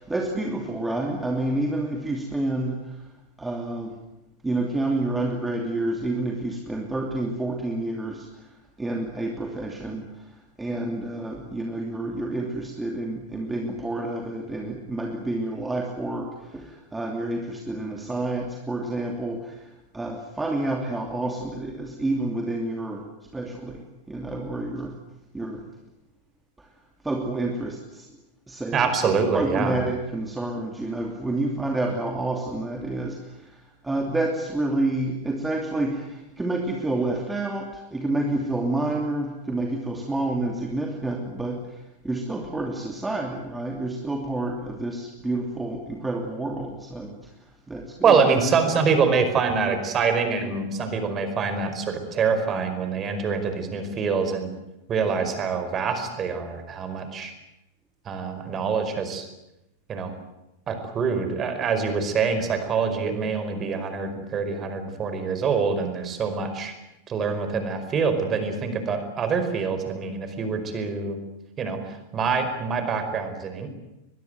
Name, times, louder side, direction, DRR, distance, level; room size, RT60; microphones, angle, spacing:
voice 1, 0.0-3.1 3.4-4.0 4.4-23.1 23.3-24.9 25.3-25.7 26.6-26.7 27.0-28.1 28.5-48.2, right 2 dB, 10° right, 2 dB, 2.9 m, -29 dB
voice 2, 28.7-29.8 48.0-54.5 54.9-57.3 58.1-59.2 59.9-60.1 60.7-66.7 67.1-71.2 71.6-71.8 72.1-73.7, right 5 dB, 25° right, 8 dB, 5.0 m, -25 dB
22.5 x 22.0 x 9.3 m, 0.91 s
figure-of-eight pair, 90°, 0 cm